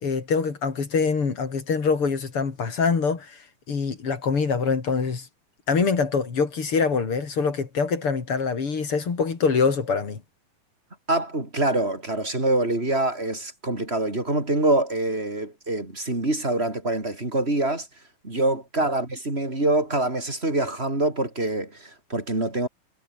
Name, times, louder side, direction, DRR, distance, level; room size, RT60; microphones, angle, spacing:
voice 1, 0.0-3.4 3.7-5.3 5.7-10.2, left 5 dB, 40° left, 3.8 m, -24 dB
voice 2, 11.1-17.9 18.2-22.7, right 2 dB, 15° right, 5.2 m, -25 dB
omnidirectional pair, 3.8 m